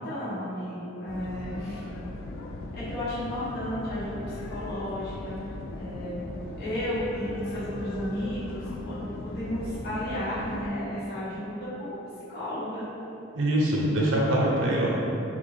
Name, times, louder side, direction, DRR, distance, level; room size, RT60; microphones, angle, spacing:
voice 1, 0.0-1.8 2.7-5.4 5.7-6.2 6.6-12.0 12.3-12.9, equal, 55° left, -12 dB, 1.0 m, -33 dB
sound 1, 1.1-10.7, left 2 dB, 90° left, 0.3 m, -38 dB
voice 2, 13.3-15.0, right 1 dB, 75° right, -3 dB, 0.6 m, -24 dB
3.9 x 2.2 x 3.2 m, 2.9 s
head